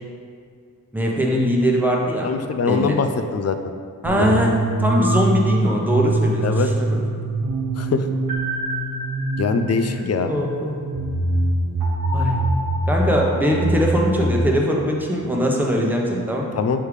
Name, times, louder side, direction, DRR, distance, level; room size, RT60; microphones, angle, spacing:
voice 1, 0.9-2.3 2.7-3.0 4.0-7.1 9.8-10.8 12.1-12.5 12.9-16.5, equal, 5° right, -2 dB, 1.0 m, -21 dB
voice 2, 2.2-3.6 4.2-4.4 6.4-6.7 7.8-8.0 9.4-10.3 16.5-16.8, left 5 dB, 45° left, 8 dB, 0.5 m, -22 dB
sound 1, 4.0-14.4, right 2 dB, 85° right, 1.0 m, -23 dB
6.5 x 3.5 x 4.8 m, 2.2 s
cardioid pair, 75°, 35 cm